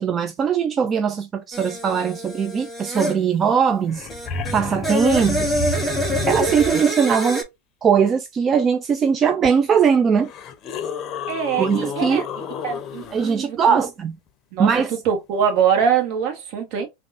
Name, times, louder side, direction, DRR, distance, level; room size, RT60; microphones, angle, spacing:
voice 1, 0.0-4.1 4.5-5.5 6.3-7.4 7.8-10.3 11.6-12.2 13.1-14.2 14.6-15.0, right 6 dB, 30° right, 0.3 m, -20 dB
sound 1, 1.5-3.2 4.1-7.4, equal, ahead, 1.2 m, -26 dB
sound 2, 3.6-3.7 3.8-6.9 9.4-9.5 10.2-13.3 15.8-15.9, left 5 dB, 35° left, 0.6 m, -30 dB
voice 2, 4.4-4.8 11.3-12.2 12.6-13.9 14.5-14.7 15.0-16.9, right 7 dB, 55° right, 1.0 m, -23 dB
3.5 x 2.2 x 2.5 m
hypercardioid pair, 95°, 0 cm